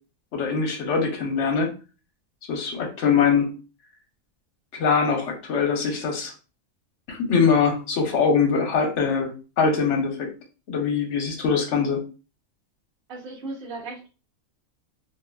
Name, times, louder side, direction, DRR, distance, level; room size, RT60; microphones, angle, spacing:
voice 1, 0.3-1.7 2.5-3.5 4.7-6.3 7.1-9.3 9.6-10.3 10.7-12.0, left 5 dB, 65° left, 3 dB, 1.0 m, -22 dB
voice 2, 13.1-14.1, right 3 dB, 50° right, -2 dB, 0.9 m, -36 dB
2.8 x 2.6 x 2.3 m, 0.33 s
omnidirectional pair, 1.4 m